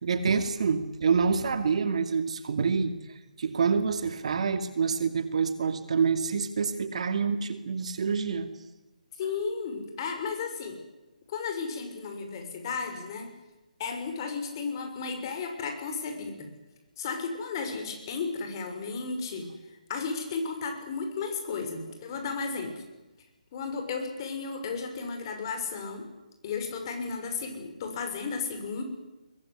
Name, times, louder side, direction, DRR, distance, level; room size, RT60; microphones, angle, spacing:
voice 1, 0.0-3.0 3.4-8.5, right 5 dB, 50° right, 9 dB, 2.4 m, -27 dB
voice 2, 9.2-10.8 11.3-13.3 13.8-16.5 17.0-19.5 19.9-22.8 23.5-26.0 26.4-28.8, left 5 dB, 30° left, 5 dB, 6.3 m, -34 dB
22.5 x 21.5 x 9.9 m, 1.0 s
hypercardioid pair, 160°, 4 cm